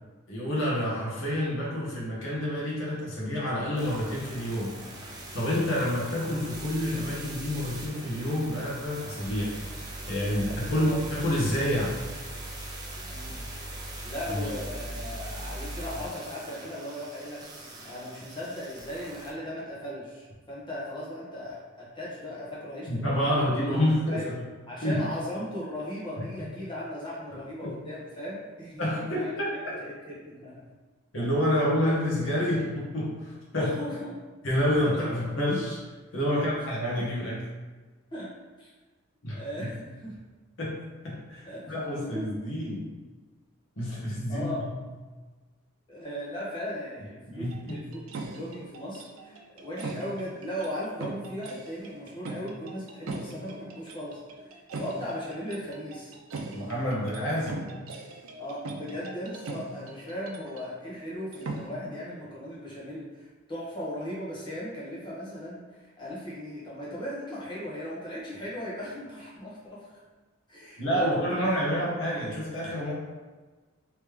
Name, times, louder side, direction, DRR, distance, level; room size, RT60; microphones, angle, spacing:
voice 1, 0.3-9.6 10.1-12.0 14.4-14.5 22.9-24.4 24.8-25.0 26.2-26.3 27.6-27.7 28.8-29.6 31.1-33.7 34.4-35.8 36.1-37.4 39.2-39.7 40.6-42.9 43.8-44.5 47.3-47.9 56.5-57.6 70.8-72.9, equal, 65° left, -5 dB, 1.2 m, -28 dB
sound 1, 3.8-19.3, right 1 dB, 20° right, 0.6 m, -40 dB
voice 2, 10.3-11.0 13.1-13.4 14.0-17.4 17.8-23.4 24.1-24.3 24.7-29.3 29.8-30.6 33.6-34.1 36.3-37.1 38.1-38.3 38.6-38.7 39.3-40.1 41.4-42.2 44.3-44.6 45.9-54.2 54.5-56.1 58.4-70.0 70.5-71.5 71.7-71.9, equal, 20° left, -7 dB, 1.1 m, -37 dB
sound 2, 47.5-60.8 61.1-61.7, right 3 dB, 80° right, 0.5 m, -40 dB
3.4 x 3.2 x 3.2 m, 1.3 s
head